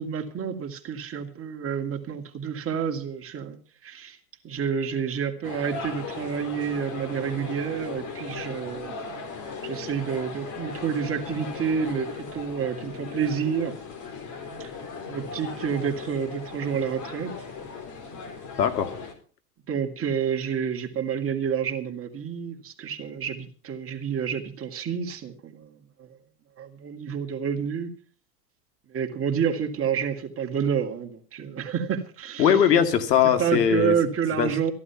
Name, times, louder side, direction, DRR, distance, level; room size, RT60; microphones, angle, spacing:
voice 1, 0.0-4.2 4.4-8.9 9.6-13.7 14.6-14.7 15.1-17.4 19.7-26.2 26.6-27.9 28.9-32.6 33.4-34.7, right 7 dB, 30° right, 3 dB, 2.5 m, -29 dB
sound 1, 5.4-19.1, left 5 dB, 40° left, 4.2 m, -37 dB
voice 2, 18.6-18.9 32.4-33.9 34.4-34.5, left 8 dB, 85° left, 8 dB, 2.3 m, -20 dB
14.5 x 11.0 x 5.9 m, 0.40 s
hypercardioid pair, 110°, 47 cm